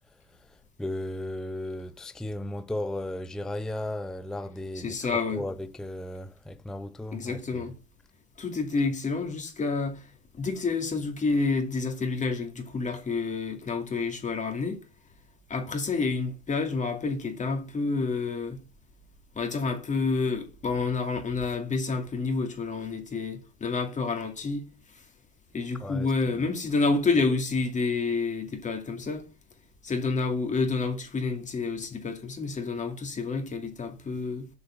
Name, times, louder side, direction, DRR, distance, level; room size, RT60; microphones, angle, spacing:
voice 1, 0.3-7.6 25.8-26.4, left 1 dB, ahead, 0.5 m, -36 dB
voice 2, 4.8-5.4 7.1-7.8 8.4-10.1 10.3-14.8 15.5-18.6 19.3-24.6 25.5-29.3 29.8-34.5, left 4 dB, 25° left, 2.4 m, -29 dB
7.2 x 6.6 x 5.6 m
hypercardioid pair, 95°, 31 cm